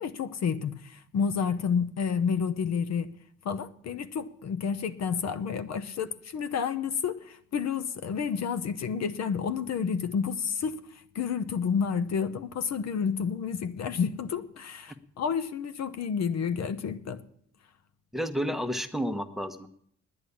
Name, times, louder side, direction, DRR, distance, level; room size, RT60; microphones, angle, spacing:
voice 1, 0.0-3.1 3.4-10.8 11.1-17.2, left 6 dB, 60° left, 0.9 m, -30 dB
voice 2, 18.1-19.7, equal, ahead, 1.1 m, -31 dB
9.9 x 9.8 x 8.5 m
cardioid pair, 90°, 30 cm